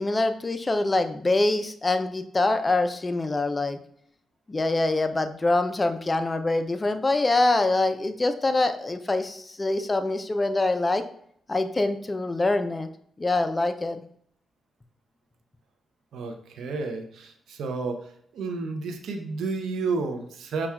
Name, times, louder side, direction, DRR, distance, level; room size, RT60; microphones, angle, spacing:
voice 1, 0.0-3.8 4.5-11.0 11.5-12.9 13.2-14.0, left 2 dB, 30° left, 9 dB, 0.4 m, -24 dB
voice 2, 16.1-18.0 18.3-20.7, right 4 dB, 75° right, 5 dB, 0.4 m, -31 dB
5.4 x 2.2 x 2.2 m, 0.67 s
supercardioid pair, 45°, 0 cm